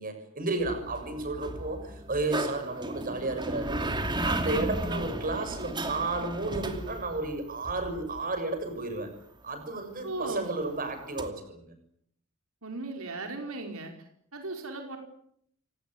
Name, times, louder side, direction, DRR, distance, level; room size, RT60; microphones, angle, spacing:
voice 1, 0.0-3.9 4.2-9.1 9.4-11.7, right 2 dB, 40° right, 8 dB, 6.8 m, -32 dB
sound 1, 0.6-8.2 11.2-11.3, right 1 dB, 20° right, 2.8 m, -34 dB
voice 2, 10.0-10.6 12.6-13.9 14.3-15.0, right 2 dB, 75° right, 4 dB, 4.9 m, -36 dB
28.5 x 18.0 x 9.6 m, 0.70 s
head